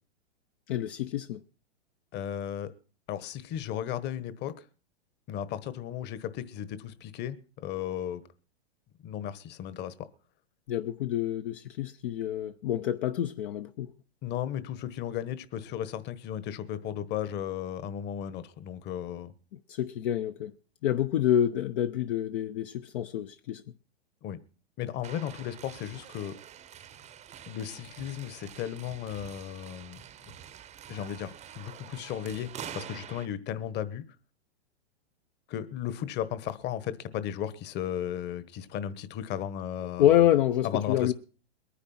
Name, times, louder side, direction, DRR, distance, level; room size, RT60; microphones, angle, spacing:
voice 1, 0.7-1.4 10.7-13.9 19.7-20.5 20.8-23.6 40.0-41.1, left 11 dB, 55° left, 0.9 m, -27 dB
voice 2, 2.1-2.7 3.1-4.6 5.3-8.2 9.0-10.1 14.2-19.3 24.2-24.4 24.8-26.4 27.5-30.0 30.9-34.0 35.5-40.3 40.6-41.1, left 10 dB, 35° left, 1.3 m, -35 dB
sound 1, 25.0-33.3, right 9 dB, 20° right, 0.8 m, -46 dB
22.0 x 9.9 x 4.3 m
hypercardioid pair, 110°, 32 cm